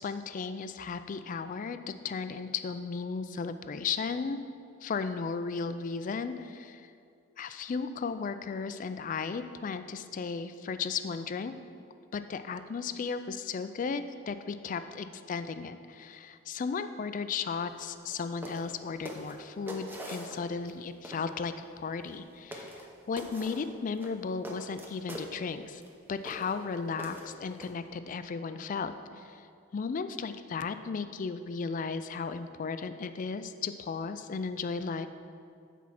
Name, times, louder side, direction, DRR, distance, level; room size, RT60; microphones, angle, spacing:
voice 1, 0.0-4.4 4.8-6.8 7.4-11.5 12.1-22.7 23.1-25.8 26.1-29.4 29.7-35.1, left 5 dB, 40° left, 11 dB, 0.3 m, -35 dB
sound 1, 18.0-18.2 18.4-18.7 19.0-20.7 21.0-21.3 22.0-22.2 22.5-22.9 23.2-23.6 24.0-25.3 25.8-25.9 26.2-26.6 27.0-27.7, equal, 10° right, 0.8 m, -43 dB
8.4 x 4.6 x 5.8 m, 2.4 s
head